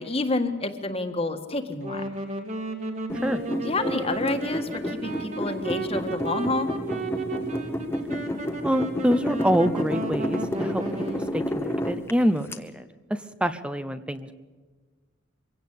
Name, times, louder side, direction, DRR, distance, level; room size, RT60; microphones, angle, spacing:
voice 1, 0.0-2.0 3.7-6.7, left 2 dB, 30° left, 7 dB, 1.6 m, -28 dB
Wind instrument woodwind instrument, 1.7-11.4, right 2 dB, 35° right, 2.2 m, -34 dB
sound 1, 3.1-12.6, equal, 10° left, 1.2 m, -31 dB
voice 2, 8.6-10.8 11.1-14.3, equal, 5° right, 12 dB, 0.7 m, -26 dB
24.0 x 16.5 x 8.5 m, 1.4 s
head